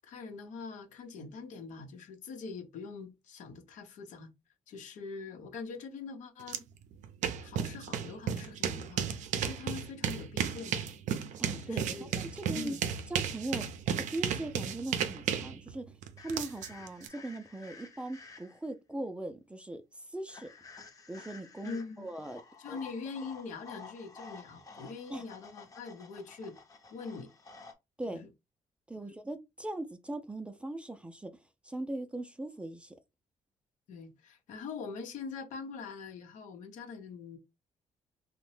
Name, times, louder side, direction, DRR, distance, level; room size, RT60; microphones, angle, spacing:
voice 1, 0.0-4.3 4.7-6.7 7.4-10.9 11.7-12.1 12.5-12.8 21.6-22.1 22.6-26.5 26.9-27.3 28.1-28.3 29.0-29.1 33.9-37.4, left 4 dB, 85° left, 0.8 m, -43 dB
sound 1, 6.5-6.6 6.9-17.1, right 8 dB, 75° right, 0.4 m, -34 dB
voice 2, 11.4-12.7 13.1-15.9 16.2-20.5 21.1-22.4 22.7-22.8 25.1-25.3 28.0-28.3 28.9-31.4 31.6-33.0, right 2 dB, 10° right, 0.4 m, -40 dB
sound 2, 16.2-18.7 20.3-27.7, left 4 dB, 25° left, 0.7 m, -52 dB
2.8 x 2.1 x 3.1 m
cardioid pair, 110°, 13 cm